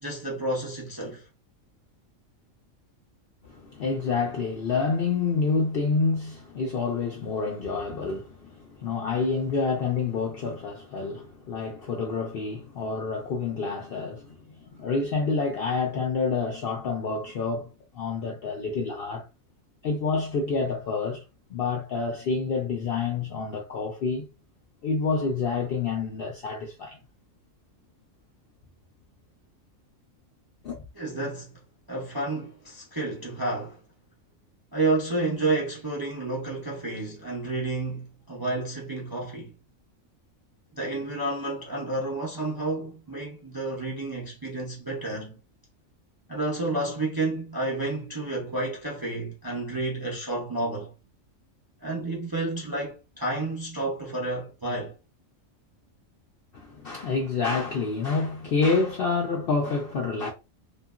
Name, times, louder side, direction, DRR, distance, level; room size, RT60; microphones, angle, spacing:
voice 1, 0.0-1.2 31.0-31.6 31.9-33.8 34.7-39.5 40.7-45.4 46.3-50.9 51.8-54.9, right 2 dB, 30° right, 0.4 m, -30 dB
voice 2, 3.4-19.2 19.8-21.2 21.5-24.3 24.8-27.0 30.6-30.8 56.5-60.3, left 4 dB, 65° left, 0.6 m, -28 dB
2.8 x 2.4 x 2.4 m
omnidirectional pair, 1.4 m